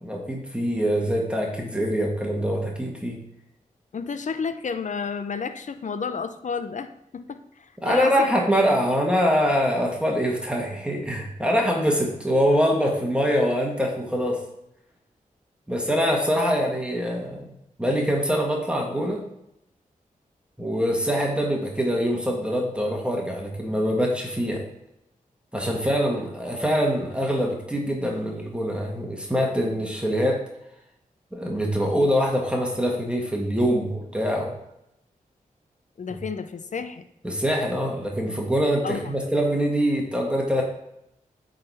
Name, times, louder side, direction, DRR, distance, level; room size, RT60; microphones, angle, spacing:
voice 1, 0.0-3.2 7.8-14.4 15.7-17.5 17.8-19.2 20.6-24.6 25.5-30.4 31.3-34.5 36.1-36.2 37.2-40.6, equal, 5° right, -1 dB, 1.7 m, -24 dB
voice 2, 3.9-8.3 9.0-9.1 36.0-37.1 38.8-39.2, left 5 dB, 55° left, 10 dB, 0.6 m, -31 dB
8.6 x 3.9 x 4.2 m, 0.82 s
cardioid pair, 45°, 15 cm